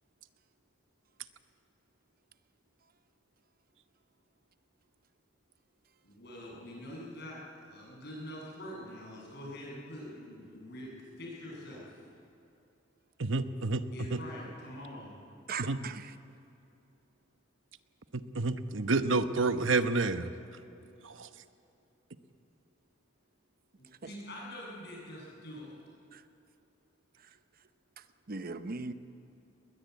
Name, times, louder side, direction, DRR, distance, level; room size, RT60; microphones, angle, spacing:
voice 1, 6.0-12.0 13.9-15.2 24.0-25.7, left 1 dB, 60° left, 8.0 m, -45 dB
voice 2, 13.2-13.8 14.1-14.2 15.7-15.8 18.1-20.3 21.2-21.3, right 3 dB, 90° right, 1.0 m, -29 dB
voice 3, 15.5-16.1 26.1-26.2 28.3-28.9, right 4 dB, 50° right, 0.8 m, -38 dB
21.0 x 20.0 x 8.3 m
head